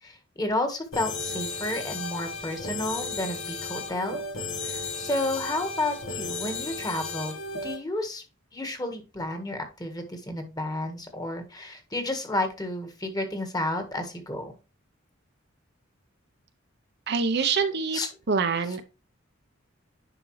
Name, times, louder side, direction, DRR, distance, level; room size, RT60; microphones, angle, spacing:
voice 1, 0.0-4.2 4.6-8.2 8.5-14.5 17.4-17.6 17.9-18.1 18.6-18.8, left 1 dB, 20° left, 6 dB, 1.4 m, -31 dB
sound 1, 0.9-7.8, left 3 dB, 80° left, 1.7 m, -34 dB
voice 2, 17.1-18.0 18.3-18.8, right 5 dB, 55° right, 9 dB, 0.7 m, -25 dB
10.0 x 5.1 x 3.1 m, 0.29 s
head